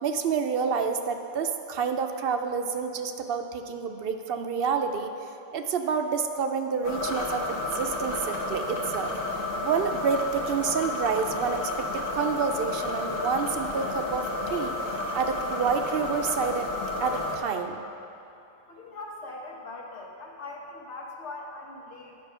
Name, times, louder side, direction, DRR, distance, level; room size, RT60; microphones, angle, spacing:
voice 1, 0.0-5.1 5.5-9.1 9.6-14.7 15.1-16.7 17.0-17.8, right 6 dB, 65° right, 6 dB, 0.7 m, -28 dB
sound 1, 6.8-17.4, left 2 dB, 55° left, 1.2 m, -31 dB
voice 2, 18.7-22.2, left 2 dB, 90° left, 0 dB, 1.4 m, -41 dB
9.9 x 5.2 x 5.6 m, 2.8 s
omnidirectional pair, 1.1 m